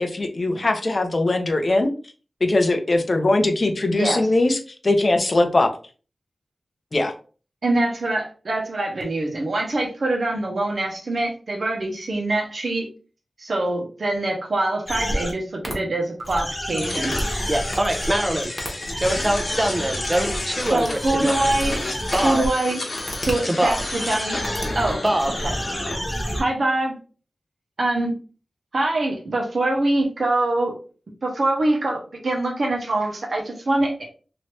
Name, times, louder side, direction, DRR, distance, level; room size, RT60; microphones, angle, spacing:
voice 1, 0.0-1.9 2.4-4.6 4.8-5.7 6.9-7.1, left 2 dB, 45° left, 5 dB, 0.6 m, -20 dB
voice 2, 3.9-4.3 7.6-12.9 13.4-17.1 20.7-21.8 22.2-22.8 23.2-24.4 24.7-25.0 25.4-25.5 26.4-26.9 27.8-28.1 28.7-30.7 31.2-34.1, right 2 dB, 65° right, 0 dB, 0.9 m, -24 dB
sound 1, 14.9-15.3 15.6-15.7 16.2-22.5 23.0-23.3 23.6-26.4, equal, 15° left, 1.1 m, -29 dB
sound 2, 16.8-26.0, left 2 dB, 65° left, 1.1 m, -31 dB
voice 3, 17.5-21.4 22.1-22.5 23.5-23.8 25.0-25.4, right 1 dB, 20° right, 5 dB, 0.6 m, -24 dB
3.0 x 2.7 x 3.1 m, 0.37 s
wide cardioid pair, 95°, 0 cm